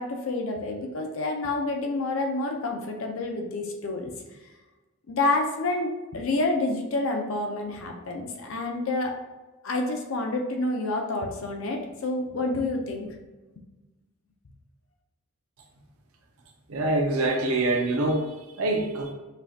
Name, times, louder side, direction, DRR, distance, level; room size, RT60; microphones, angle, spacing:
voice 1, 0.0-4.1 5.1-9.2 9.6-13.1, left 2 dB, 60° left, 2 dB, 0.6 m, -28 dB
voice 2, 16.7-19.1, right 2 dB, 70° right, 1 dB, 0.7 m, -25 dB
5.2 x 2.4 x 2.7 m, 1.2 s
head